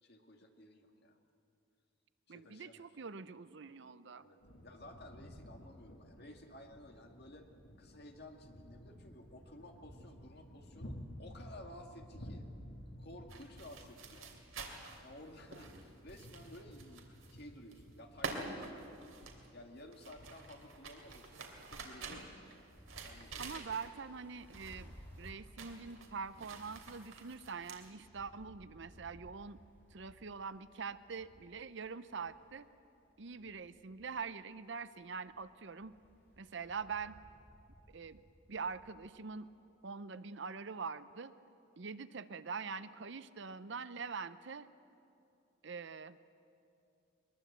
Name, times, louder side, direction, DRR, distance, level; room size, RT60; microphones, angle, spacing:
voice 1, 0.0-1.2 2.3-3.0 4.2-4.4 4.6-7.5 7.8-12.5 13.0-14.4 14.8-18.8 19.5-22.6 23.0-23.5 23.8-23.9, left 1 dB, 50° left, 3 dB, 2.1 m, -55 dB
voice 2, 2.3-4.3 23.4-29.6 29.9-32.7 33.2-36.0 36.4-37.2 37.9-38.2 38.5-39.5 39.8-41.3 41.8-44.7 45.6-46.2, right 5 dB, 60° right, 14 dB, 0.6 m, -44 dB
sound 1, 4.4-22.4, equal, 90° left, 2.4 m, -54 dB
sound 2, 13.3-17.4 17.7-24.2 24.5-24.9 25.1-27.9, right 3 dB, 75° right, 2.9 m, -48 dB
sound 3, 22.7-39.0, equal, 10° left, 3.7 m, -60 dB
21.5 x 21.5 x 8.2 m, 2.7 s
head